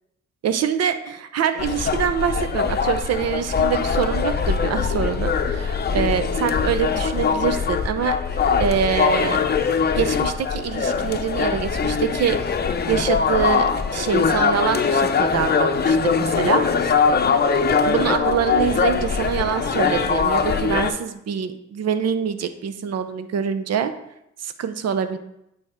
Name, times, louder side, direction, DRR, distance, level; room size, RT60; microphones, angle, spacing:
voice 1, 0.4-8.2 8.6-9.4 10.0-12.4 12.9-16.9 17.8-23.9 24.4-25.2, right 7 dB, 55° right, 10 dB, 0.8 m, -25 dB
sound 1, 1.6-20.9, left 5 dB, 35° left, 0.7 m, -22 dB
8.9 x 5.0 x 4.4 m, 0.81 s
cardioid pair, 90°, 30 cm